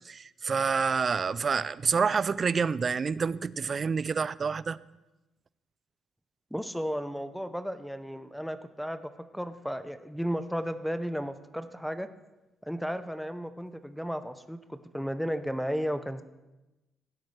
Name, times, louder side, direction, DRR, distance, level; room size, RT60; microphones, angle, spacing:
voice 1, 0.0-4.8, right 5 dB, 40° right, 19 dB, 0.3 m, -28 dB
voice 2, 6.5-12.1 12.7-16.2, equal, ahead, 11 dB, 0.6 m, -34 dB
17.0 x 8.7 x 3.3 m, 1.0 s
cardioid pair, 90°, 0 cm